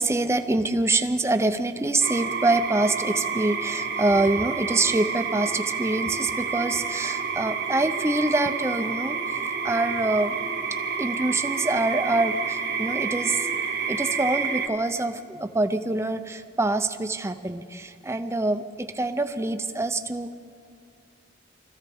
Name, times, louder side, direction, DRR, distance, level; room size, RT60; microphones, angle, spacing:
voice 1, 0.0-9.2 9.6-10.4 11.0-13.5 13.9-20.3, right 2 dB, 15° right, 8 dB, 0.5 m, -25 dB
sound 1, 2.0-14.7, right 5 dB, 50° right, 1.1 m, -29 dB
24.0 x 15.0 x 3.5 m, 2.3 s
head